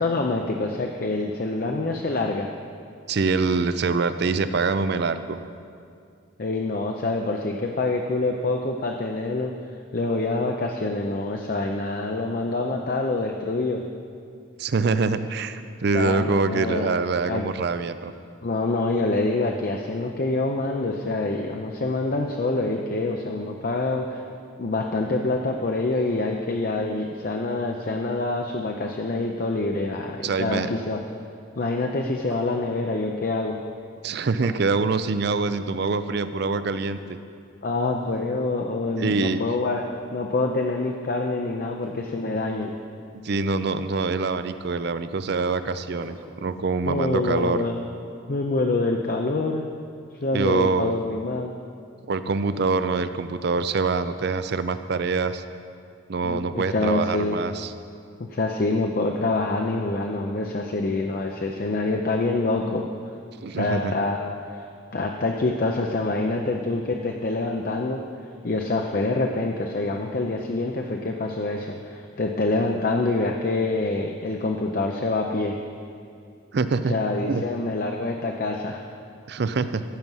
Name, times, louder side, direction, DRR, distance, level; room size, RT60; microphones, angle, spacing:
voice 1, 0.0-2.5 6.4-9.5 9.9-13.8 15.9-16.9 17.3-17.5 18.4-24.2 24.6-31.0 31.6-33.6 37.6-39.8 40.1-42.7 46.9-47.8 48.3-49.6 50.1-51.5 56.2-57.4 58.2-62.9 63.5-64.7 64.9-75.5 76.9-78.8, left 2 dB, 45° left, 2 dB, 0.5 m, -26 dB
voice 2, 3.1-5.4 14.6-18.1 30.2-30.7 34.0-37.2 39.0-39.4 43.2-47.6 50.3-50.9 52.0-55.4 56.1-57.7 63.4-63.9 76.5-77.0 77.3-77.4 79.3-79.8, right 4 dB, 50° right, 12 dB, 0.4 m, -25 dB
sound 1, 32.3-32.6 33.2-33.8 34.1-34.7 35.4-35.8 36.1-36.2 36.4-37.1 37.4-37.5 38.0-38.5 39.0-39.3 40.1-40.2 40.8-42.1 42.5-42.7 43.5-43.9 44.8-45.5 45.8-46.9 47.4-47.7, equal, 20° right, 1.2 m, -45 dB
14.5 x 6.0 x 5.5 m, 2.4 s
head